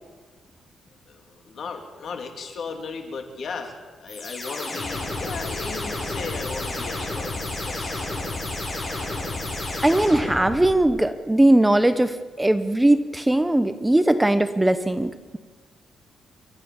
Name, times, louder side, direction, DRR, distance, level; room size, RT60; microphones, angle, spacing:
voice 1, 1.1-8.1, left 5 dB, 60° left, 5 dB, 3.0 m, -36 dB
sound 1, 4.1-10.9, left 2 dB, 25° left, 6.7 m, -31 dB
voice 2, 9.8-15.4, right 1 dB, 10° right, 11 dB, 0.8 m, -20 dB
29.0 x 13.5 x 7.2 m, 1.4 s
cardioid pair, 130°, 0 cm